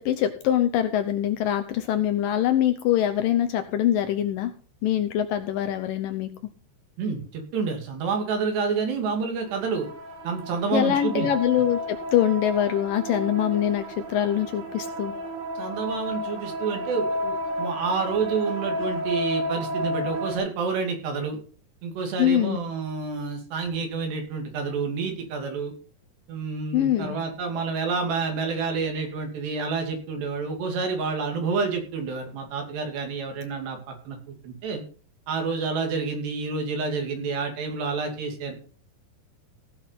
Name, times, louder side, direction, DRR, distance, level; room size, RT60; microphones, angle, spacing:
voice 1, 0.0-4.5 4.8-6.3 10.7-15.1 22.2-22.6 26.7-27.2, left 11 dB, 75° left, 8 dB, 2.1 m, -24 dB
voice 2, 7.0-9.9 10.2-11.3 15.6-21.4 21.8-25.7 26.3-34.8 35.3-38.5, right 5 dB, 90° right, 4 dB, 4.7 m, -29 dB
sound 1, 9.5-20.4, equal, 70° right, 3.4 m, -32 dB
16.5 x 6.0 x 5.8 m, 0.41 s
omnidirectional pair, 4.7 m